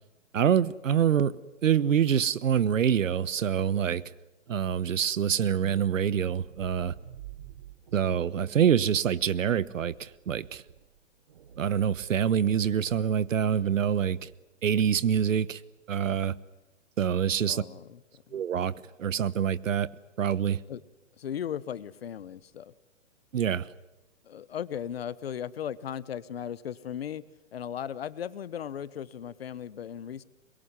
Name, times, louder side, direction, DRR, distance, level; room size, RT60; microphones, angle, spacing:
voice 1, 0.3-4.0 4.5-6.9 7.9-10.6 11.6-14.3 14.6-15.6 15.9-16.3 17.0-17.6 18.3-18.7 19.0-19.9 20.2-20.6 23.3-23.7, right 8 dB, 75° right, 1.2 m, -26 dB
sound 1, 6.1-14.5, right 10 dB, 35° right, 1.2 m, -51 dB
voice 2, 17.5-18.0 18.3-18.4 20.7-20.8 21.2-22.7 24.2-27.3 27.5-30.2, left 9 dB, 50° left, 1.1 m, -37 dB
24.0 x 22.0 x 9.7 m
hypercardioid pair, 170°, 39 cm